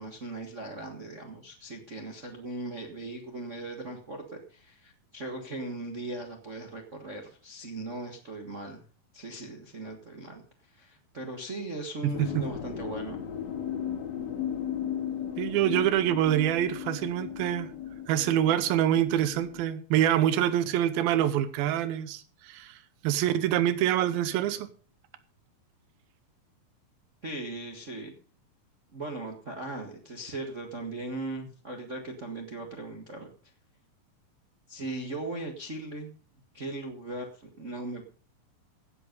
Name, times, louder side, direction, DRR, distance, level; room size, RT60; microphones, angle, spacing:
voice 1, 0.0-8.8 9.1-13.2 27.2-28.1 28.9-33.3 34.7-36.2 36.5-38.0, right 2 dB, 50° right, 0.8 m, -38 dB
voice 2, 12.0-12.5 15.4-17.7 18.1-22.8 23.0-24.7, right 11 dB, 85° right, 2.8 m, -26 dB
sound 1, 12.1-19.7, left 9 dB, 55° left, 2.7 m, -36 dB
16.5 x 8.0 x 5.3 m
omnidirectional pair, 4.2 m